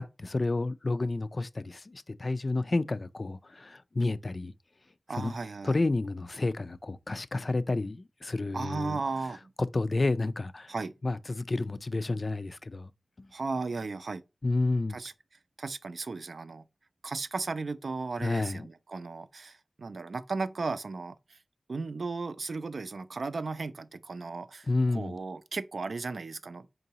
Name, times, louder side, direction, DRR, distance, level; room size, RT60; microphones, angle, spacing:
voice 1, 0.0-4.5 5.2-5.3 5.6-9.0 9.7-10.7 11.0-12.9 13.2-13.3 14.4-15.0 18.2-18.7 24.7-25.2, left 2 dB, 55° left, 0.3 m, -30 dB
voice 2, 5.1-5.8 8.5-9.5 10.7-10.9 13.3-14.2 14.9-15.1 15.6-16.6 17.0-21.4 21.7-26.7, right 4 dB, 85° right, 0.4 m, -35 dB
4.6 x 3.8 x 2.8 m
wide cardioid pair, 50°, 0 cm